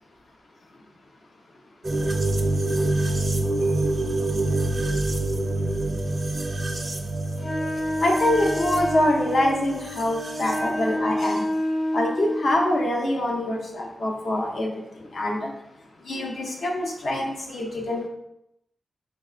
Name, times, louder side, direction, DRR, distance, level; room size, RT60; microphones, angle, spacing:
sound 1, 1.8-10.6, right 2 dB, 40° right, 0.4 m, -26 dB
Wind instrument woodwind instrument, 7.4-12.9, equal, 85° left, 1.4 m, -28 dB
voice 1, 8.0-11.5 11.9-14.7 15.1-15.5 16.1-18.1, left 1 dB, 65° left, 0 dB, 0.7 m, -25 dB
4.1 x 3.1 x 2.4 m, 0.82 s
wide cardioid pair, 125°, 0 cm